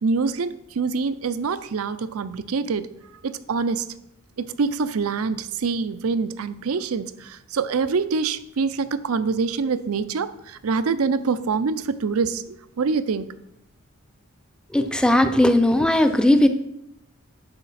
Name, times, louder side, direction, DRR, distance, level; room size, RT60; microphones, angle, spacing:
voice 1, 0.0-2.9 3.2-3.9 4.4-13.3, right 4 dB, 85° right, 0.5 m, -25 dB
voice 2, 14.7-16.5, left 1 dB, 5° left, 0.5 m, -17 dB
9.8 x 6.4 x 4.2 m
head